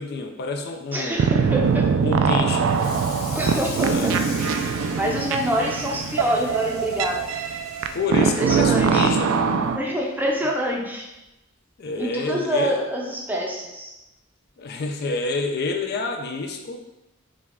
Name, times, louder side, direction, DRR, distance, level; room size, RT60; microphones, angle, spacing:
voice 1, 0.0-1.2 2.0-2.8 3.9-4.1 7.9-9.4 11.8-12.8 14.6-16.8, left 3 dB, 50° left, 4 dB, 0.4 m, -28 dB
voice 2, 0.9-2.1 3.3-4.3 5.0-7.3 8.2-9.1 9.7-11.1 12.0-13.9, equal, 10° right, -1 dB, 0.6 m, -26 dB
sound 1, 1.2-9.8, right 6 dB, 70° right, 0.3 m, -22 dB
Water tap faucet / Sink (filling or washing), 2.6-9.2 9.6-9.9 10.2-10.3 10.7-10.8 11.9-12.0 12.5-12.7, left 2 dB, 90° left, 1.3 m, -40 dB
5.2 x 2.3 x 3.6 m, 0.96 s
head